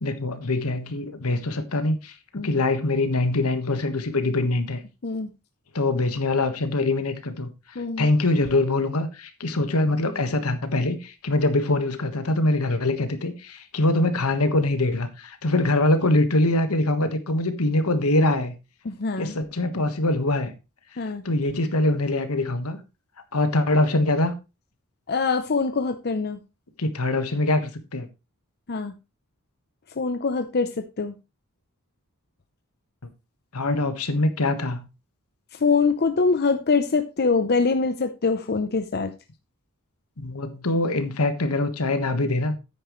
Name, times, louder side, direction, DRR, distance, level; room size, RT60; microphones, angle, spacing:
voice 1, 0.0-2.1 2.4-4.8 5.7-7.5 8.0-18.5 19.2-20.5 21.2-22.8 23.3-24.3 26.8-28.1 33.5-34.9 40.2-42.6, left 2 dB, 80° left, 1.4 m, -23 dB
voice 2, 7.8-8.1 18.8-19.4 21.0-21.2 25.1-26.4 28.7-28.9 30.0-30.7 31.0-31.1 35.6-39.1, left 4 dB, 45° left, 0.7 m, -23 dB
9.8 x 9.0 x 3.1 m
head